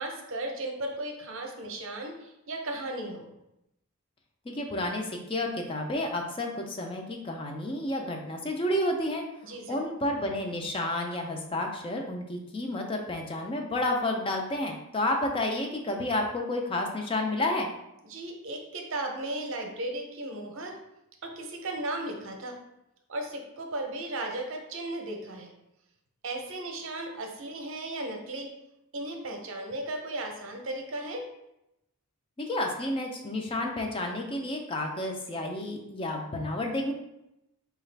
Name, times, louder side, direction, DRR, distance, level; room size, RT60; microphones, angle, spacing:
voice 1, 0.0-3.3 9.4-9.8 18.1-20.7 21.2-22.5 23.1-25.5 26.2-28.5 28.9-31.3, right 2 dB, 60° right, 3 dB, 0.6 m, -35 dB
voice 2, 4.5-9.2 9.7-17.7 32.4-36.9, left 1 dB, 25° left, 2 dB, 0.4 m, -30 dB
4.7 x 2.4 x 3.2 m, 0.86 s
head